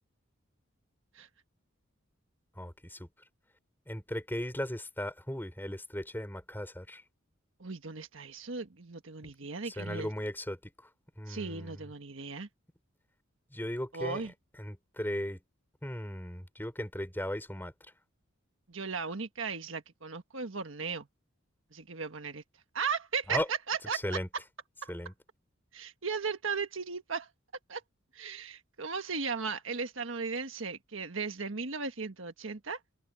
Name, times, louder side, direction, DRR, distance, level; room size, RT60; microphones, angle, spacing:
voice 1, 2.6-3.0 3.9-7.0 9.8-10.6 11.2-11.8 13.5-14.2 14.6-15.4 15.8-17.7 23.3-23.4 24.0-24.3 24.9-25.1, left 1 dB, 10° left, 4.3 m, -36 dB
voice 2, 7.6-10.1 11.3-12.5 13.9-14.3 18.7-21.1 21.7-22.4 22.7-24.2 24.8-24.9 25.7-27.3 27.7-27.8 28.1-32.8, right 5 dB, 70° right, 1.5 m, -36 dB
head